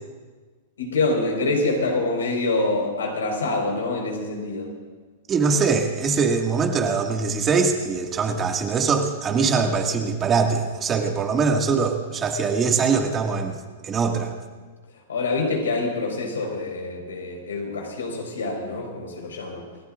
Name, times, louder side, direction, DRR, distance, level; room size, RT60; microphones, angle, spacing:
voice 1, 0.8-4.7 15.1-19.6, left 3 dB, 80° left, 0 dB, 5.1 m, -26 dB
voice 2, 5.3-13.6 13.8-14.3, right 5 dB, 25° right, 2 dB, 2.1 m, -22 dB
28.5 x 14.0 x 2.6 m, 1.4 s
hypercardioid pair, 110°, 0 cm